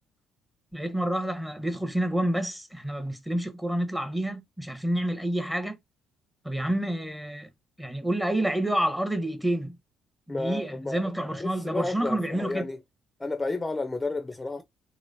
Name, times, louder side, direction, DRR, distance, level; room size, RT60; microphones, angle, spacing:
voice 1, 0.7-5.8 6.4-7.5 7.8-9.8 10.3-12.7, right 1 dB, 5° right, 0.9 m, -28 dB
voice 2, 10.3-11.0 11.4-12.8 13.2-14.6, left 3 dB, 20° left, 0.5 m, -31 dB
3.0 x 3.0 x 2.6 m
hypercardioid pair, 50°, 0 cm